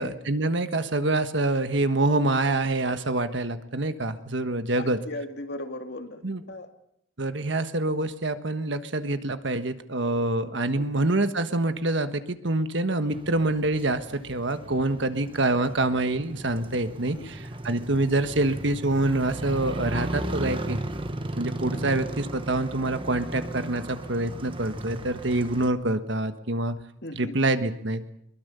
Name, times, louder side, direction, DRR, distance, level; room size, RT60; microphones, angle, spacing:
voice 1, 0.0-5.0 6.2-6.4 7.2-20.8 21.4-26.8 27.1-28.0, right 2 dB, 65° right, 10 dB, 1.4 m, -26 dB
voice 2, 4.8-6.2 6.5-6.7 10.8-11.0 17.1-17.3 21.7-21.8 27.0-27.4, left 1 dB, 55° left, 6 dB, 2.2 m, -37 dB
Motorcycle, 13.1-25.7, right 1 dB, 25° right, 1.3 m, -36 dB
22.5 x 21.0 x 6.9 m, 0.74 s
head